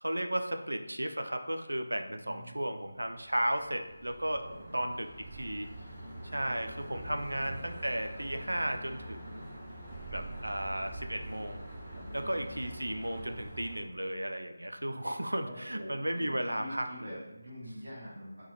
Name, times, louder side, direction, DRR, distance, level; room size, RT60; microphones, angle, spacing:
voice 1, 0.0-4.4 4.7-5.7 6.3-9.5 10.1-11.6 12.1-17.1, right 1 dB, 80° right, 6 dB, 0.3 m, -34 dB
voice 2, 2.2-2.7 4.4-4.7 6.8-7.7 11.9-12.4 15.4-18.4, equal, 50° right, -8 dB, 1.4 m, -46 dB
sound 1, 2.8-13.8, right 1 dB, 10° right, 0.8 m, -45 dB
3.9 x 2.2 x 2.9 m, 0.97 s
figure-of-eight pair, 160°, 0 cm